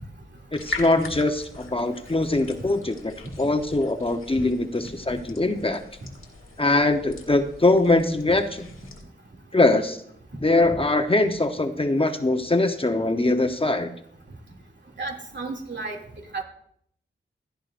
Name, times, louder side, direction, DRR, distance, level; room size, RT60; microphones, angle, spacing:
sound 1, 0.5-9.0, left 3 dB, 85° left, 1.9 m, -41 dB
voice 1, 0.5-5.8 6.6-8.7 9.5-10.0 10.4-13.9, left 2 dB, 25° left, 7 dB, 0.9 m, -22 dB
voice 2, 10.3-10.8 15.0-16.0 16.3-16.4, right 3 dB, 60° right, 0 dB, 2.6 m, -33 dB
16.0 x 10.5 x 2.6 m, 0.68 s
cardioid pair, 50°, 21 cm